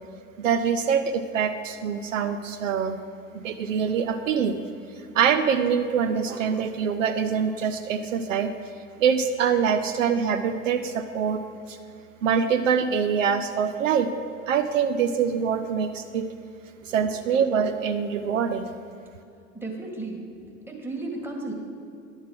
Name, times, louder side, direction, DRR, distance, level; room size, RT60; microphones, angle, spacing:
voice 1, 0.4-3.0 3.3-4.6 5.1-8.5 9.0-11.4 11.7-11.8 12.2-14.1 14.5-16.3 16.9-18.7, right 7 dB, 75° right, 8 dB, 0.6 m, -24 dB
voice 2, 19.5-20.3 20.7-21.5, right 2 dB, 5° right, 0 dB, 1.6 m, -34 dB
10.5 x 4.0 x 7.3 m, 2.6 s
figure-of-eight pair, 70°, 39 cm